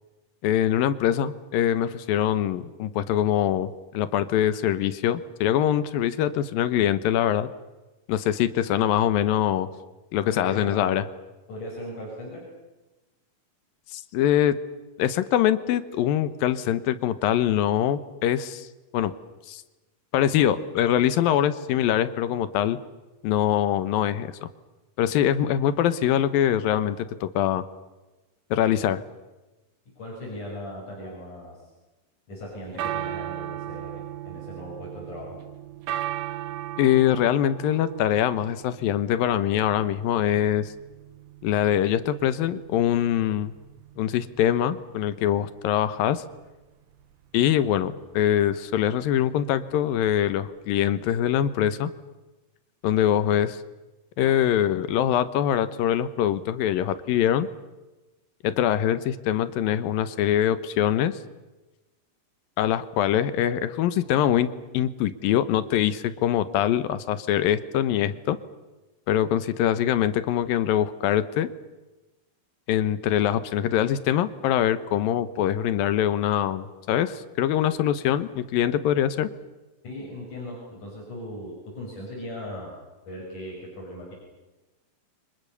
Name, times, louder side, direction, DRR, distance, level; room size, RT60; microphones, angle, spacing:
voice 1, 0.4-7.5 8.1-9.7 10.1-11.1 13.9-14.6 15.0-18.7 18.9-19.1 19.5-19.6 20.1-22.8 23.2-24.3 25.0-27.7 28.5-29.0 36.8-40.7 41.4-43.5 44.0-46.2 47.3-51.9 52.8-53.6 54.2-57.5 58.4-61.2 62.6-68.4 69.1-71.5 72.7-79.3, left 11 dB, 85° left, 13 dB, 2.8 m, -23 dB
voice 2, 10.3-11.0 11.5-12.4 30.0-31.6 32.3-35.4 79.8-82.8 83.1-84.1, left 1 dB, 60° left, -3 dB, 8.3 m, -38 dB
sound 1, 32.4-51.5, right 12 dB, 70° right, 2.6 m, -38 dB
30.0 x 25.5 x 6.9 m, 1.1 s
omnidirectional pair, 4.1 m